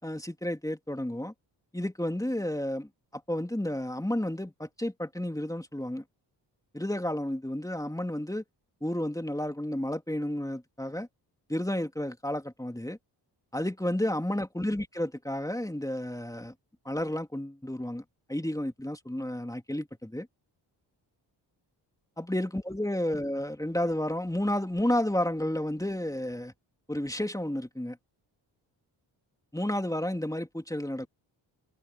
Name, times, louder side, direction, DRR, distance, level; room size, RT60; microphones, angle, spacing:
voice 1, 0.0-1.3 1.7-6.0 6.7-8.4 8.8-11.1 11.5-13.0 13.5-16.5 16.8-18.0 18.3-20.3 22.2-26.5 26.9-28.0 29.5-31.1, left 1 dB, 5° left, 3.1 m, -31 dB
supercardioid pair, 55°, 48 cm